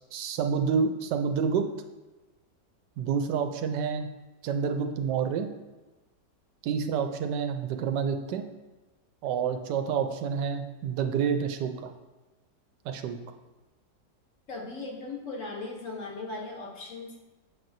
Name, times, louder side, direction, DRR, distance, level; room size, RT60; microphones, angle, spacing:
voice 1, 0.1-1.7 3.0-4.1 4.4-5.5 6.6-8.4 9.2-11.9 12.8-13.2, right 6 dB, 85° right, 6 dB, 1.2 m, -28 dB
voice 2, 14.5-17.2, left 3 dB, 55° left, -1 dB, 1.1 m, -38 dB
7.0 x 5.9 x 2.6 m, 1.1 s
omnidirectional pair, 1.8 m